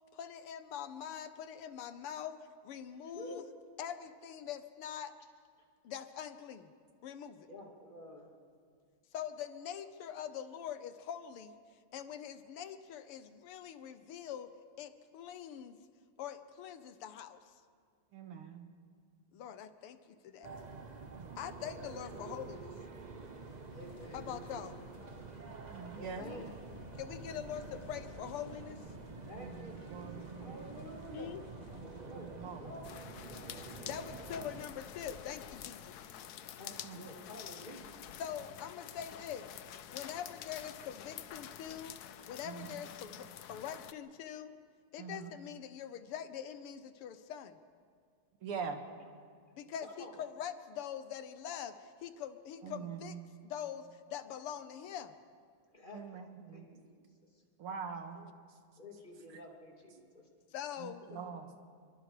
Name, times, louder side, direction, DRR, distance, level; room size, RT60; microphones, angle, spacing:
voice 1, 0.1-2.4 2.6-3.4 3.8-5.1 5.8-6.7 7.0-7.5 9.1-11.5 11.9-14.5 14.8-15.8 16.2-17.4 19.3-20.5 21.4-22.7 24.1-24.8 26.2-26.4 27.0-28.8 31.1-31.4 33.8-36.0 38.2-39.5 39.9-42.0 42.3-44.5 44.9-47.6 49.6-53.2 53.4-55.1 58.2-58.3 60.5-61.0, left 9 dB, 85° left, 11 dB, 1.9 m, -43 dB
voice 2, 7.5-8.3 21.7-22.0 23.7-24.2 25.3-25.4 25.9-26.5 29.3-31.3 32.0-34.3 36.6-37.9 49.8-50.2 55.7-57.0 58.8-60.2 61.1-61.4, equal, 20° left, -1 dB, 2.9 m, -50 dB
voice 3, 18.1-18.6 21.1-21.4 25.7-26.3 29.3-30.9 31.7-32.8 36.8-37.1 42.4-42.9 45.0-45.3 48.4-48.8 52.6-53.2 55.9-56.7 57.6-58.2 60.8-61.5, right 6 dB, 80° right, 5 dB, 2.5 m, -44 dB
sound 1, 20.4-34.6, right 4 dB, 55° right, 0.4 m, -48 dB
sound 2, 23.1-36.2, left 5 dB, 50° left, 1.2 m, -58 dB
sound 3, 32.8-43.9, left 10 dB, 65° left, 1.0 m, -48 dB
27.5 x 23.5 x 5.0 m, 2.1 s
omnidirectional pair, 2.4 m